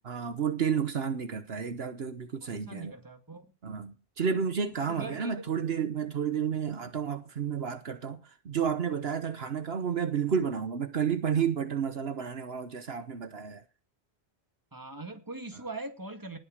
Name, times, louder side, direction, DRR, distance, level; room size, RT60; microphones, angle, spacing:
voice 1, 0.0-2.9 3.6-13.6, right 7 dB, 70° right, 1.3 m, -31 dB
voice 2, 2.4-3.5 5.0-5.4 14.7-16.4, right 2 dB, 20° right, 2.1 m, -41 dB
19.5 x 6.8 x 6.6 m
omnidirectional pair, 1.1 m